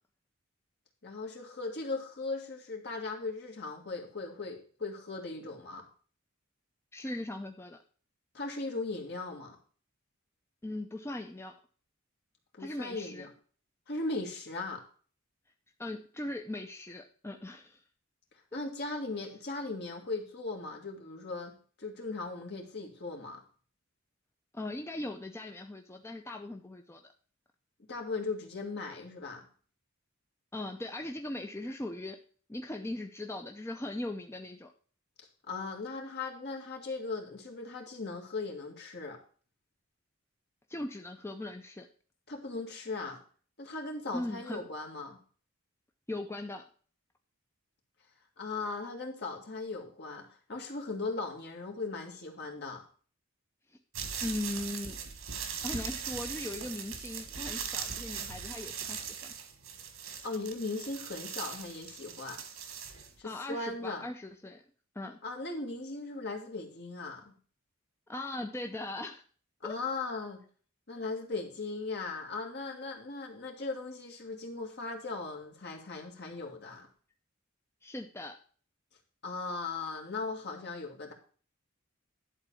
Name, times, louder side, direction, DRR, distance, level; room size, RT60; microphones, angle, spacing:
voice 1, 1.0-5.8 8.3-9.6 12.6-13.3 13.9-14.8 18.5-21.5 21.8-23.4 27.9-29.5 35.5-39.2 42.3-43.2 43.6-45.2 48.4-52.8 60.2-62.4 63.2-64.1 65.2-67.3 69.6-70.4 70.9-76.9 79.2-81.1, left 3 dB, 55° left, 1 dB, 2.0 m, -38 dB
voice 2, 6.9-7.8 10.6-11.5 12.6-13.3 15.8-17.8 18.5-18.6 24.5-27.1 30.5-32.2 32.5-34.7 40.7-41.9 44.1-44.6 46.1-46.6 53.7-53.8 54.2-55.0 55.6-59.3 63.2-64.6 64.9-65.2 68.1-69.2 69.6-69.8 77.8-78.4, left 1 dB, 10° left, 4 dB, 0.6 m, -39 dB
sound 1, 53.9-63.1, right 7 dB, 85° right, 1.5 m, -40 dB
11.0 x 4.0 x 6.9 m, 0.43 s
head